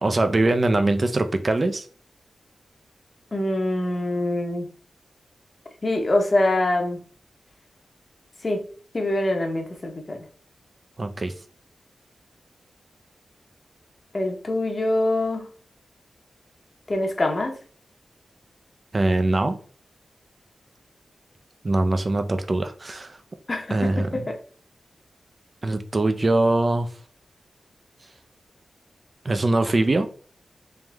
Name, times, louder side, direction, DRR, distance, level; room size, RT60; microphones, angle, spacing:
voice 1, 0.0-1.9 11.0-11.3 18.9-19.6 21.6-23.2 23.7-24.3 25.6-26.9 29.2-30.1, right 2 dB, 30° right, 8 dB, 0.5 m, -22 dB
voice 2, 3.3-4.7 5.8-7.0 8.4-8.7 8.9-10.2 14.1-15.4 16.9-17.6 23.5-24.3, left 1 dB, 30° left, 3 dB, 0.8 m, -24 dB
3.6 x 3.0 x 3.4 m, 0.41 s
wide cardioid pair, 135°, 0 cm